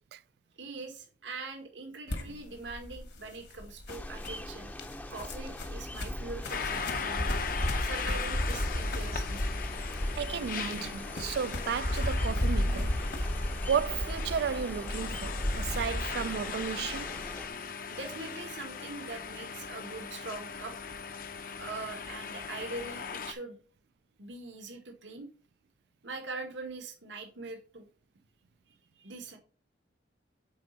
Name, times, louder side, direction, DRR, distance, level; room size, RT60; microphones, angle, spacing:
voice 1, 0.6-4.7 5.1-7.3 7.5-9.4 15.3-15.4 17.9-20.8 21.6-23.6 24.2-25.3 26.0-27.9 29.0-29.4, right 3 dB, 90° right, 1.8 m, -42 dB
sound 1, 2.1-16.1, left 1 dB, 65° left, 1.7 m, -34 dB
sound 2, 3.9-17.5, left 1 dB, 10° left, 0.6 m, -44 dB
sound 3, 6.5-23.3, left 6 dB, 50° left, 0.7 m, -39 dB
voice 2, 10.2-13.0 13.7-17.1, right 7 dB, 60° right, 0.3 m, -33 dB
9.4 x 4.4 x 3.9 m
head